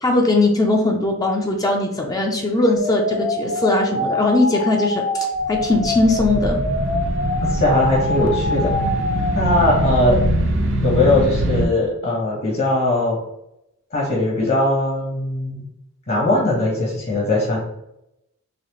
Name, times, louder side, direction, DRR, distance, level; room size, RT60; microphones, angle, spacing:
voice 1, 0.0-6.6, left 2 dB, 15° left, 2 dB, 0.4 m, -19 dB
sound 1, 2.8-10.1, left 1 dB, 85° left, 0.6 m, -25 dB
sound 2, 5.4-11.6, right 1 dB, 55° right, 0.7 m, -23 dB
voice 2, 7.4-8.9 9.3-10.2 10.8-13.2 13.9-15.6 16.1-17.6, left 2 dB, 50° left, -4 dB, 1.1 m, -20 dB
4.1 x 3.0 x 3.0 m, 0.83 s
head